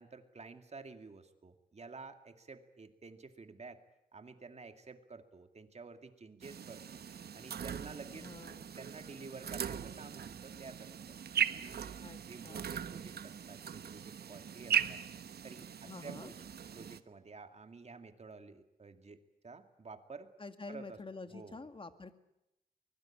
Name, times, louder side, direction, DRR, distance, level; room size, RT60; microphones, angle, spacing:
voice 1, 0.0-3.8 4.1-7.0 7.3-8.3 8.8-11.2 11.5-15.0 15.4-16.4 16.7-20.3 20.7-21.0 21.3-21.6, right 4 dB, 45° right, 7 dB, 2.3 m, -51 dB
sound 1, 6.4-17.0, right 8 dB, 85° right, 1.1 m, -39 dB
voice 2, 8.1-8.7 12.0-12.2 12.4-12.7 15.8-16.3 20.4-22.1, left 3 dB, 35° left, 9 dB, 2.0 m, -47 dB
24.0 x 21.5 x 8.8 m, 0.89 s
wide cardioid pair, 95°, 16 cm